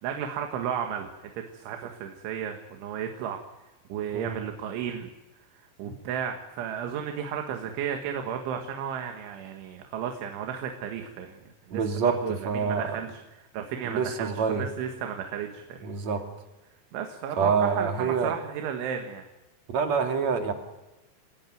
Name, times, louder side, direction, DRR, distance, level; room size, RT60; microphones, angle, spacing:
voice 1, 0.0-3.4 3.9-5.1 5.8-11.4 11.7-15.9 16.9-19.2, right 8 dB, 80° right, 4 dB, 4.1 m, -34 dB
voice 2, 11.7-12.1 12.4-12.8 13.9-14.6 15.8-16.2 17.4-18.3 19.7-20.5, right 5 dB, 45° right, 5 dB, 2.9 m, -26 dB
29.0 x 16.5 x 9.3 m, 1.1 s
omnidirectional pair, 5.5 m